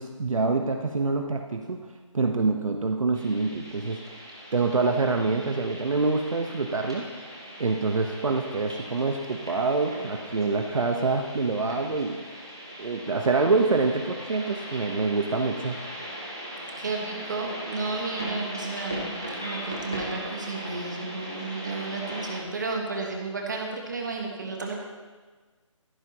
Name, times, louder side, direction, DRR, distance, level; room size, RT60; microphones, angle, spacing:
voice 1, 0.0-1.9 2.1-4.2 4.5-7.3 7.6-12.4 12.8-15.8, right 3 dB, 80° right, 3 dB, 1.2 m, -26 dB
sound 1, 3.1-22.4, equal, 5° right, 0.4 m, -39 dB
voice 2, 16.8-24.8, right 3 dB, 35° right, 0 dB, 1.6 m, -33 dB
15.0 x 14.0 x 3.0 m, 1.4 s
hypercardioid pair, 180°, 17 cm